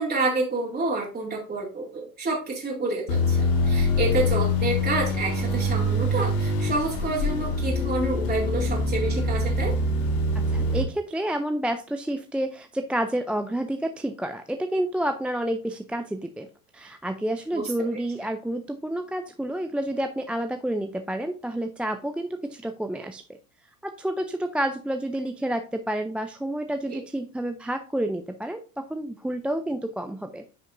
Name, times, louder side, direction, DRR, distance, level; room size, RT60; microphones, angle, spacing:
voice 1, 0.0-9.7 17.5-17.6 26.9-27.0, right 3 dB, 20° right, -3 dB, 2.4 m, -28 dB
sound 1, 3.1-10.8, left 1 dB, 80° left, 1.6 m, -24 dB
voice 2, 10.3-16.5 16.7-23.4 23.8-30.4, right 1 dB, 5° right, 6 dB, 0.3 m, -29 dB
9.9 x 5.3 x 2.6 m, 0.36 s
hypercardioid pair, 85°, 45 cm